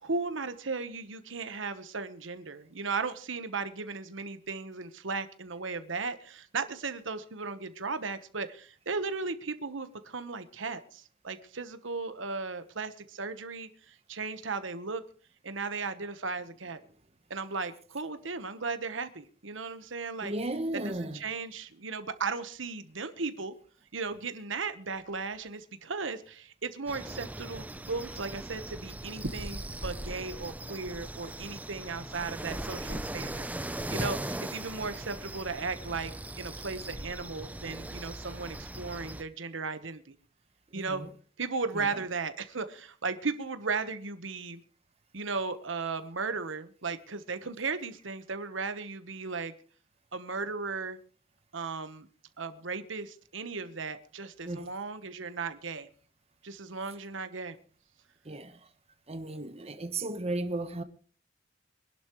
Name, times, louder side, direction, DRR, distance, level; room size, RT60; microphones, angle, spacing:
voice 1, 0.0-15.0 15.4-16.8 17.3-20.3 20.7-23.5 23.9-40.1 40.7-41.0 41.4-44.6 45.1-49.5 50.1-51.0 51.5-52.1 52.4-55.9 56.4-57.6, right 4 dB, 80° right, 1.2 m, -36 dB
voice 2, 20.2-21.2 40.7-41.2 41.7-42.0 54.4-54.7 58.2-58.6 59.1-60.8, right 2 dB, 30° right, 1.1 m, -35 dB
sound 1, 26.9-39.2, right 1 dB, 10° right, 0.6 m, -39 dB
24.5 x 11.5 x 3.1 m
head